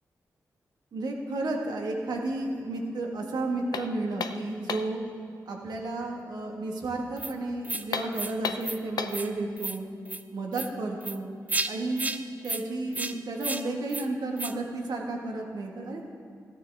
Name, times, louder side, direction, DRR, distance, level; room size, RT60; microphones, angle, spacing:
voice 1, 0.9-5.0 5.4-9.9 10.3-11.3 11.7-12.1 12.4-16.0, right 2 dB, 80° right, 1 dB, 1.7 m, -32 dB
sound 1, 3.7-5.0 7.8-9.3, left 5 dB, 70° left, 0.6 m, -34 dB
sound 2, 7.2-7.3 7.6-7.8 8.1-8.3 8.6-8.8 9.1-9.3 9.6-9.8 10.1-10.2 10.5-10.7 11.0-11.2 11.5-11.7 12.0-12.2 12.4-12.6 12.9-13.1 13.4-13.6 13.9-14.0 14.4-14.5, right 2 dB, 25° right, 0.7 m, -32 dB
14.0 x 11.5 x 3.6 m, 2.5 s
cardioid pair, 55°, 7 cm